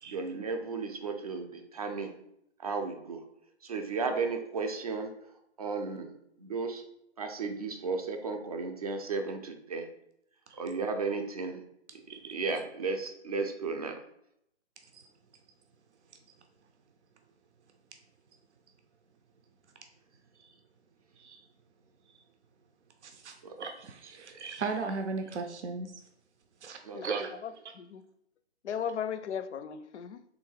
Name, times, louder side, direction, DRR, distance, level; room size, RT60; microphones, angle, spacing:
voice 1, 0.1-2.1 2.6-3.2 3.6-5.1 5.6-6.1 6.4-6.8 7.2-9.9 10.6-11.6 12.3-14.0 23.4-23.5 26.8-27.0, right 4 dB, 35° right, 5 dB, 0.4 m, -34 dB
voice 2, 23.0-25.9 26.6-27.3, right 4 dB, 80° right, 5 dB, 0.6 m, -37 dB
voice 3, 26.9-28.0 28.6-30.2, left 8 dB, 80° left, 12 dB, 0.5 m, -37 dB
3.6 x 2.6 x 4.5 m, 0.77 s
hypercardioid pair, 155°, 34 cm